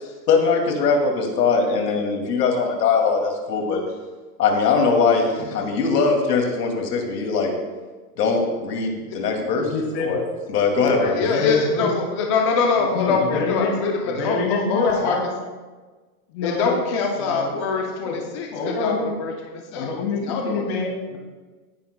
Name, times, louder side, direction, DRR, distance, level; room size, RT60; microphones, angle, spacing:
voice 1, 0.3-3.8 4.4-7.5 8.2-9.7 10.0-10.2 10.5-11.2, left 4 dB, 90° left, 3 dB, 2.4 m, -21 dB
voice 2, 9.6-10.2 10.9-11.9 12.8-13.8 14.0-15.2 16.3-16.8 17.2-17.6 18.0-18.2 18.5-19.0 19.7-21.2, left 4 dB, 40° left, 0 dB, 2.4 m, -27 dB
voice 3, 11.0-15.2 16.4-18.5 18.8-18.9 19.2-19.9 20.3-20.6, left 4 dB, 20° left, 1 dB, 0.5 m, -23 dB
17.0 x 10.0 x 2.2 m, 1.3 s
supercardioid pair, 165°, 46 cm